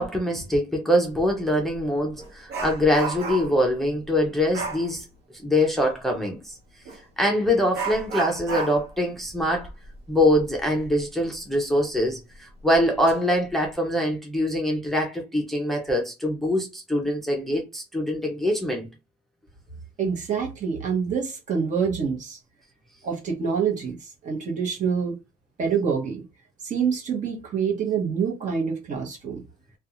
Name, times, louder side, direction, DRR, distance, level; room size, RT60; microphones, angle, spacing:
voice 1, 0.0-5.0 5.4-6.5 7.2-9.7 10.1-18.9, left 1 dB, ahead, 0.6 m, -24 dB
Dog, 1.2-1.3 1.7-3.7 4.5-4.9 6.8-7.0 7.7-11.0 11.3-11.4 12.0-12.1 12.7-13.1 13.5-13.7, right 3 dB, 80° right, 0.9 m, -33 dB
voice 2, 20.0-22.4 23.0-25.2 25.6-26.2 26.6-29.4, right 6 dB, 45° right, 1.0 m, -26 dB
2.4 x 2.3 x 2.9 m
cardioid pair, 110°, 17 cm